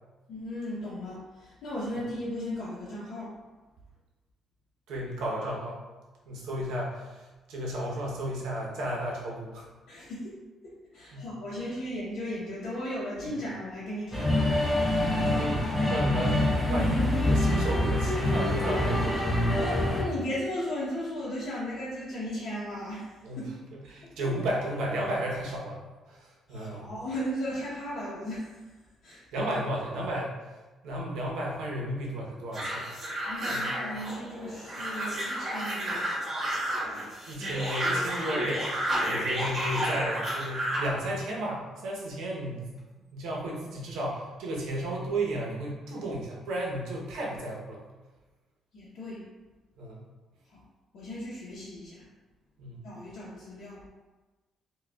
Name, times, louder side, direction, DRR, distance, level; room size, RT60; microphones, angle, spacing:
voice 1, 0.3-3.3 9.9-10.4 10.9-14.5 19.6-23.5 24.0-24.1 26.5-28.6 29.0-29.2 33.3-36.1 48.7-49.2 50.5-50.6 50.9-52.1 52.8-53.8, equal, 60° left, -9 dB, 0.7 m, -36 dB
voice 2, 4.9-5.8 6.3-9.6 11.1-11.3 14.9-19.3 23.2-23.4 23.7-26.9 29.1-30.4 30.8-33.2 33.5-33.7 36.9-42.7 43.1-47.8 49.8-50.1 52.6-52.9, right 1 dB, 85° right, -3 dB, 0.8 m, -34 dB
sound 1, 14.1-20.0, left 1 dB, 10° left, 0.6 m, -25 dB
sound 2, 32.5-40.9, right 1 dB, 35° right, 1.5 m, -31 dB
4.7 x 2.3 x 2.3 m, 1.2 s
cardioid pair, 175°, 0 cm